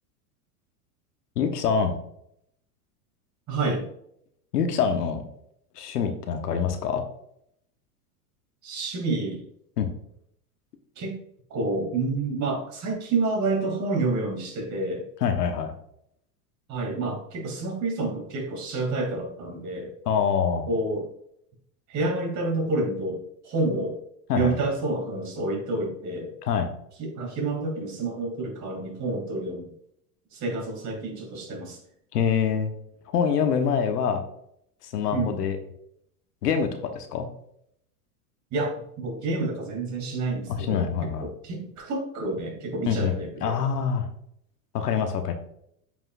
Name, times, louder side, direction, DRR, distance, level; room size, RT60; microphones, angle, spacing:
voice 1, 1.4-2.0 4.5-5.2 5.8-7.0 9.8-9.9 15.2-15.7 20.1-20.6 24.3-24.5 26.4-26.7 32.1-32.7 33.1-34.2 34.8-35.6 36.4-37.3 40.5-41.3 42.9-44.1 44.7-45.3, left 7 dB, 85° left, 6 dB, 1.2 m, -25 dB
voice 2, 3.5-3.8 8.6-9.4 11.0-11.2 11.5-15.0 16.7-19.9 20.7-21.1 21.9-23.2 23.4-24.0 24.3-26.3 27.0-29.7 30.3-31.8 35.1-35.4 38.5-40.9 41.2-43.6, right 2 dB, 40° right, 0 dB, 2.8 m, -29 dB
8.1 x 5.4 x 2.5 m, 0.73 s
hypercardioid pair, 100°, 46 cm